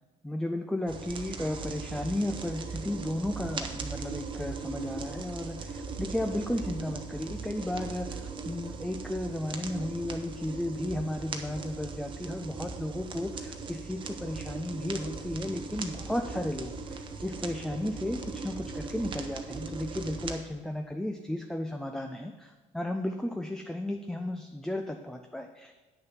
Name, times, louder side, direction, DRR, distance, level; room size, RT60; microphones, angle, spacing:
voice 1, 0.2-25.7, left 1 dB, 5° left, 5 dB, 0.5 m, -34 dB
sound 1, 0.9-20.4, right 4 dB, 35° right, 0.9 m, -39 dB
9.0 x 6.7 x 6.0 m, 1.3 s
cardioid pair, 140°, 15 cm